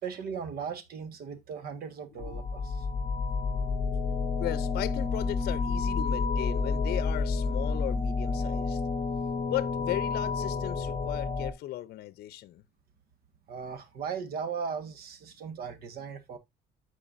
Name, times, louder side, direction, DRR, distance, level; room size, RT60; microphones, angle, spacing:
voice 1, 0.0-2.9 13.5-16.4, right 6 dB, 65° right, 1.6 m, -37 dB
sound 1, 2.2-11.5, left 4 dB, 35° left, 1.1 m, -30 dB
voice 2, 4.4-8.8 9.5-12.6, left 15 dB, 65° left, 0.6 m, -36 dB
13.5 x 4.8 x 2.6 m
cardioid pair, 110°, 17 cm